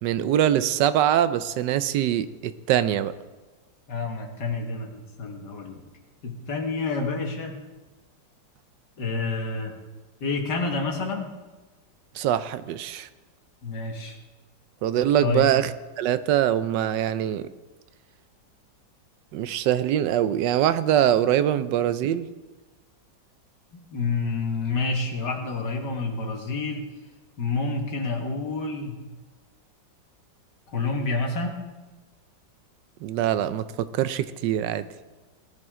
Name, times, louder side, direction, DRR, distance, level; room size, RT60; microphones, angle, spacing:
voice 1, 0.0-3.1 12.1-13.1 14.8-17.5 19.3-22.3 33.0-34.8, right 11 dB, 75° right, 13 dB, 1.2 m, -23 dB
voice 2, 3.9-5.8 6.2-7.6 9.0-9.7 10.2-11.3 13.6-14.2 15.2-15.5 23.7-26.8 27.4-29.0 30.7-31.6, left 3 dB, 65° left, 2 dB, 2.2 m, -28 dB
18.0 x 10.5 x 3.7 m, 1.2 s
omnidirectional pair, 2.0 m